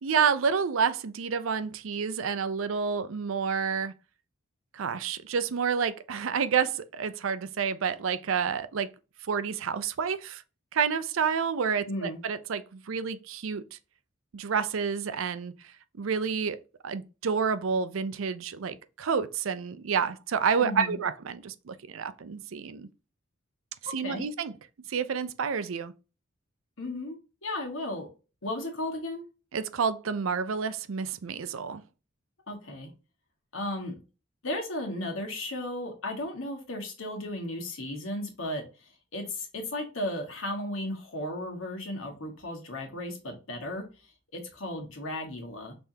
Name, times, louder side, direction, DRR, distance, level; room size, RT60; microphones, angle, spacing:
voice 1, 0.0-3.9 4.7-8.9 9.3-10.4 10.7-13.8 14.3-15.5 16.0-16.6 16.8-22.9 23.9-24.5 24.9-25.9 29.5-31.8, right 6 dB, 85° right, 0.5 m, -29 dB
voice 2, 11.9-12.2 20.6-21.0 24.0-24.2 26.8-27.2 27.4-28.1 28.4-29.2 32.5-32.9 33.5-34.0 34.4-45.7, left 1 dB, 85° left, 1.5 m, -35 dB
5.4 x 3.4 x 2.7 m
head